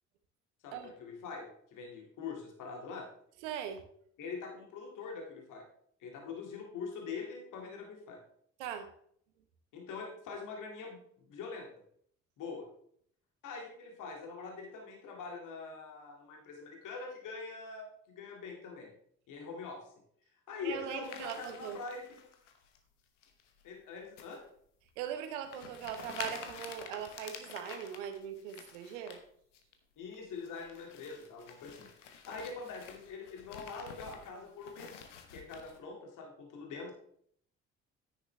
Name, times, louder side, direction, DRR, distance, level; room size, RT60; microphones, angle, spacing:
voice 1, 0.6-3.1 4.2-5.6 6.0-8.2 9.7-11.7 12.4-12.6 13.4-18.9 19.3-19.8 20.5-22.0 23.6-24.4 30.0-35.0 35.3-36.9, left 4 dB, 60° left, 1 dB, 2.2 m, -44 dB
voice 2, 3.4-3.9 8.6-8.9 20.6-21.8 25.0-29.2, right 9 dB, 70° right, 8 dB, 1.1 m, -40 dB
sound 1, 21.0-22.8 23.2-23.6 24.2-24.4 24.9-25.0 25.4-29.2 29.5-29.7 30.1-35.8, left 7 dB, 80° left, 1.0 m, -49 dB
9.8 x 9.0 x 3.3 m, 0.64 s
figure-of-eight pair, 45°, 36 cm